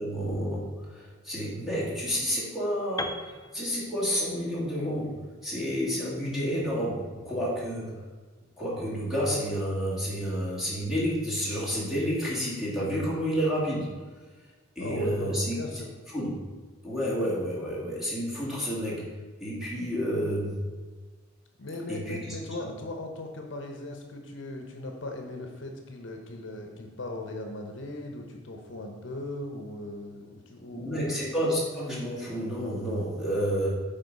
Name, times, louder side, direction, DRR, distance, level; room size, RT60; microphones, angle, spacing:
voice 1, 0.0-8.0 8.6-13.9 14.8-15.6 16.1-16.3 16.8-19.0 19.4-20.6 21.9-22.7 30.7-33.7, equal, ahead, -7 dB, 2.2 m, -30 dB
Piano, 3.0-6.9, left 2 dB, 20° left, 0.4 m, -41 dB
voice 2, 14.8-15.9 21.6-31.1, left 2 dB, 65° left, 3 dB, 0.9 m, -38 dB
8.6 x 3.8 x 5.4 m, 1.4 s
head